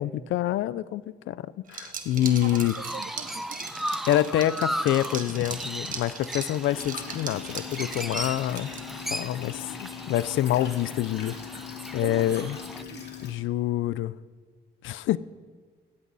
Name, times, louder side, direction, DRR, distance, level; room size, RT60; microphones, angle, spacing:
voice 1, 0.0-2.7 4.1-8.7 9.1-11.6 11.9-12.6 13.2-14.2 14.8-15.2, left 13 dB, 90° left, 0.5 m, -26 dB
Liquid, 1.7-9.1, right 6 dB, 45° right, 1.6 m, -39 dB
Chirp tweet, 2.2-12.8, equal, ahead, 0.4 m, -37 dB
voice 2, 2.3-3.7 12.0-12.5 12.8-13.3, right 11 dB, 60° right, 0.5 m, -42 dB
sound 1, 6.7-13.3, left 9 dB, 60° left, 2.4 m, -41 dB
17.5 x 14.5 x 4.1 m
cardioid pair, 150°, 19 cm